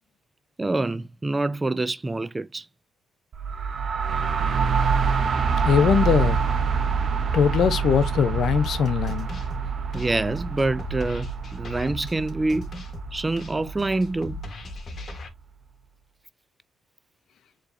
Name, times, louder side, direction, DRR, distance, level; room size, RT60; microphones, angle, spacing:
voice 1, 0.6-2.7 9.9-12.7 13.1-14.4, right 2 dB, 20° right, 0.3 m, -26 dB
sound 1, 3.3-15.0, right 5 dB, 50° right, 0.6 m, -27 dB
voice 2, 5.7-6.4 7.3-9.3, left 7 dB, 65° left, 0.6 m, -21 dB
sound 2, 8.4-15.3, left 1 dB, 45° left, 1.2 m, -39 dB
4.6 x 3.1 x 2.5 m
cardioid pair, 90°, 0 cm